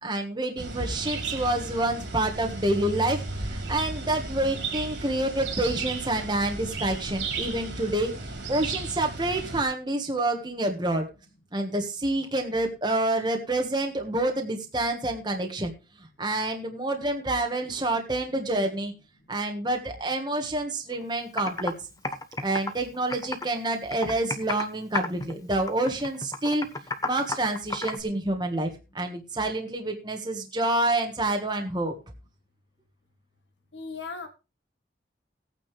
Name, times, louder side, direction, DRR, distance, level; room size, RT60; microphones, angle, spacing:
voice 1, 0.0-11.1 11.5-15.7 16.2-18.9 19.3-21.7 22.4-26.7 27.0-31.9, right 2 dB, 25° right, 3 dB, 1.5 m, -28 dB
sound 1, 0.6-9.6, right 3 dB, 90° right, 3.8 m, -34 dB
Computer keyboard, 20.9-21.0 21.4-21.7 22.0-23.6 23.9-24.7 24.9-25.3 25.7-28.0, left 3 dB, 20° left, 1.0 m, -31 dB
voice 2, 33.7-34.3, left 4 dB, 80° left, 6 dB, 1.9 m, -36 dB
17.0 x 9.1 x 3.4 m, 0.30 s
head